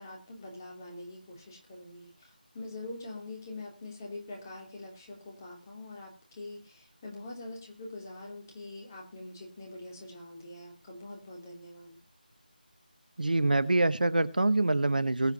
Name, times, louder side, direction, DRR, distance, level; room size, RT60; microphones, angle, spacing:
voice 1, 0.0-12.0, left 2 dB, 20° left, -1 dB, 2.9 m, -44 dB
voice 2, 13.2-15.3, right 2 dB, 65° right, 14 dB, 1.0 m, -25 dB
22.0 x 8.1 x 2.7 m, 0.31 s
figure-of-eight pair, 165°, 5 cm